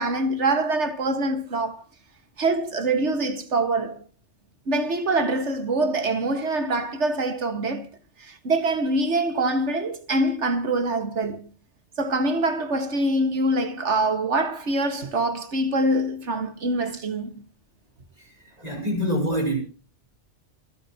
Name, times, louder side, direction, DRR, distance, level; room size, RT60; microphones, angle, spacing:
voice 1, 0.0-1.8 2.4-4.0 4.7-7.9 8.2-11.5 12.0-17.4, right 2 dB, 80° right, 2.0 m, -24 dB
voice 2, 18.6-19.6, equal, 35° right, 5.0 m, -25 dB
26.5 x 9.2 x 2.9 m
omnidirectional pair, 1.2 m